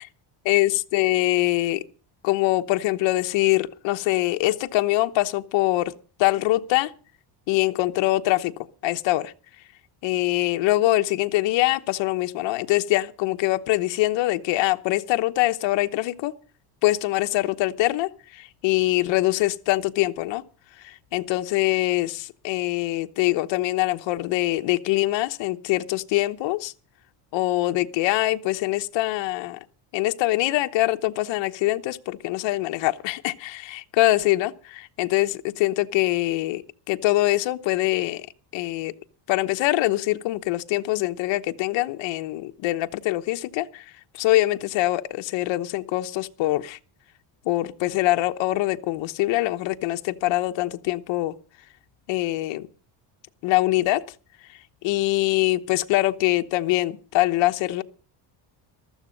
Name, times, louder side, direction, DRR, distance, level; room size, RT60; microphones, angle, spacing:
voice 1, 0.4-1.8 2.2-5.9 6.2-6.9 7.5-8.5 8.8-9.3 10.0-16.3 16.8-20.4 20.8-26.7 27.3-29.6 29.9-38.3 38.5-38.9 39.3-43.8 44.1-46.8 47.4-51.3 52.1-52.7 53.4-54.0 54.5-57.8, left 17 dB, 65° left, 1.1 m, -23 dB
15.0 x 13.0 x 5.2 m
cardioid pair, 160°, 47 cm